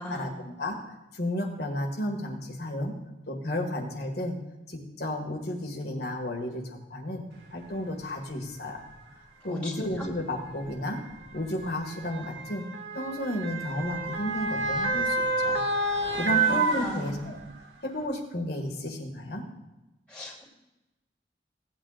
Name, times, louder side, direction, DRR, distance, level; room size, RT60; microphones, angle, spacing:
voice 1, 0.1-3.0 3.3-4.4 4.7-7.2 7.5-8.8 9.1-11.0 11.3-12.6 12.9-15.6 16.1-17.4 17.8-19.4, left 1 dB, 65° left, 2 dB, 2.0 m, -33 dB
Motor vehicle (road) / Siren, 7.6-7.7 8.7-8.9 10.0-17.6 18.0-18.1, right 3 dB, 80° right, 1.9 m, -29 dB
voice 2, 9.4-10.1 16.2-17.2 20.1-20.4, left 1 dB, 5° left, -6 dB, 2.8 m, -38 dB
17.5 x 8.8 x 2.5 m, 1.0 s
head